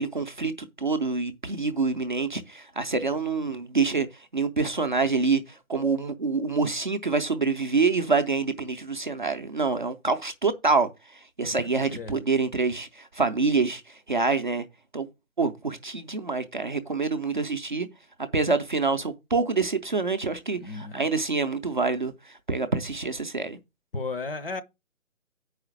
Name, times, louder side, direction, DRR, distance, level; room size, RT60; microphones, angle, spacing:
voice 1, 0.0-4.1 4.3-14.6 14.9-15.1 15.4-17.9 18.3-23.6, right 4 dB, 35° right, 0.5 m, -26 dB
voice 2, 11.6-12.2 20.5-21.0 23.9-24.6, left 3 dB, 45° left, 0.7 m, -34 dB
6.2 x 4.9 x 6.1 m
figure-of-eight pair, 155°, 41 cm